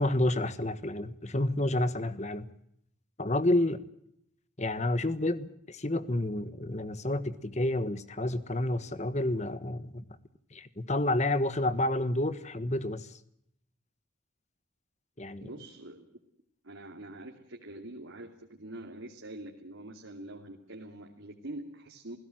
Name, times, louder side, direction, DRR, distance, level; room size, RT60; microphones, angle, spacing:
voice 1, 0.0-2.5 3.2-3.8 4.6-10.1 10.5-13.1 15.2-15.5, left 1 dB, 35° left, 13 dB, 1.3 m, -29 dB
voice 2, 15.4-16.0 16.6-22.2, right 1 dB, 85° right, 1 dB, 2.7 m, -44 dB
28.5 x 17.0 x 7.7 m, 0.74 s
head